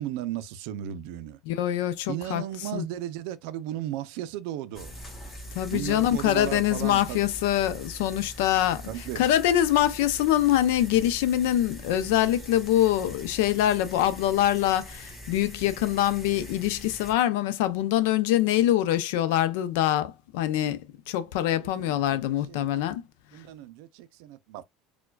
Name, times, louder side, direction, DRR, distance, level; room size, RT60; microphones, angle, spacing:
voice 1, 0.0-1.4 2.1-4.9 5.7-7.2 8.9-9.2 21.6-22.2 22.5-22.9 23.3-24.6, right 12 dB, 75° right, 0.4 m, -35 dB
voice 2, 1.5-2.4 2.7-2.8 5.5-20.8 21.1-23.0, left 12 dB, 90° left, 0.5 m, -24 dB
sound 1, 4.8-17.1, equal, 15° left, 1.3 m, -43 dB
4.5 x 2.2 x 2.2 m
cardioid pair, 140°, 0 cm